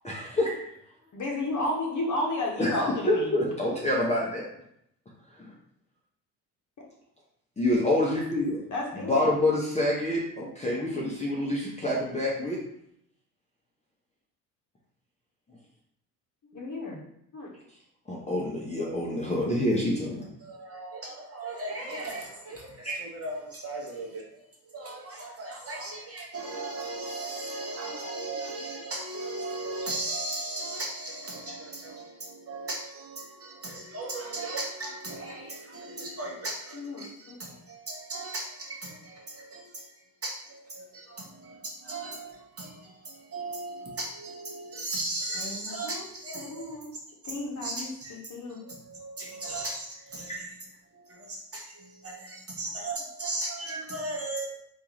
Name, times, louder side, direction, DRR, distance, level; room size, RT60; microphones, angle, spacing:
voice 1, 0.0-0.6 2.6-2.7 3.1-4.4 7.6-8.6 9.1-12.6 18.1-20.2 22.8-23.0 50.3-50.4 53.7-53.8, left 1 dB, 15° left, -5 dB, 0.8 m, -27 dB
voice 2, 1.1-3.3 8.7-9.3 16.4-17.0 17.3-17.5 33.7-33.8 36.7-37.4 45.3-46.0 46.3-46.9 47.2-48.6, left 2 dB, 35° left, -1 dB, 1.0 m, -33 dB
voice 3, 20.4-46.8 47.2-47.3 47.6-48.2 48.5-50.6 50.9-54.5, right 2 dB, 30° right, -2 dB, 1.1 m, -37 dB
3.5 x 2.7 x 3.0 m, 0.74 s
hypercardioid pair, 55°, 49 cm